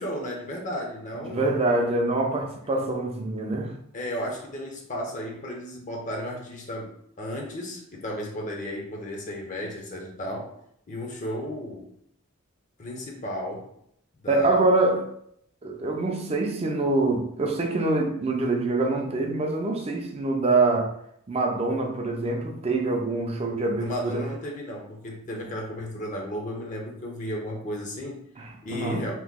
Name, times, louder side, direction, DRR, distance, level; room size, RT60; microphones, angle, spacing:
voice 1, 0.0-1.5 3.9-10.5 10.9-11.9 12.8-13.7 14.2-14.7 23.7-28.3 28.6-29.1, equal, 35° left, 0.6 m, -34 dB
voice 2, 1.3-3.7 14.3-15.1 15.6-20.9 21.3-24.3 25.4-25.5 28.4-29.1, right 2 dB, 30° right, 0.4 m, -25 dB
2.9 x 2.1 x 3.5 m
head